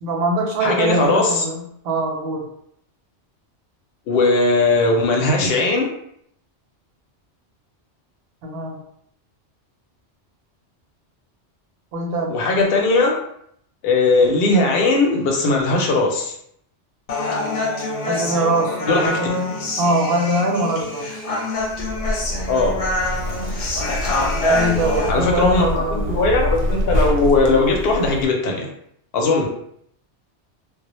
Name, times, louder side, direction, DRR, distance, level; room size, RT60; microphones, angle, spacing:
voice 1, 0.0-2.5 8.4-8.8 11.9-12.4 18.1-21.1 24.5-26.2, right 1 dB, 65° right, 1 dB, 0.7 m, -23 dB
voice 2, 0.6-1.4 4.1-5.9 12.3-13.1 13.8-16.3 18.9-19.2 22.5-22.9 25.1-28.7 29.1-29.5, left 3 dB, 65° left, 1 dB, 0.7 m, -18 dB
Human voice, 17.1-25.1, left 2 dB, 90° left, 1.0 m, -25 dB
Zipper (clothing), 21.6-28.3, equal, 90° right, 0.9 m, -26 dB
2.1 x 2.0 x 2.9 m, 0.71 s
omnidirectional pair, 1.2 m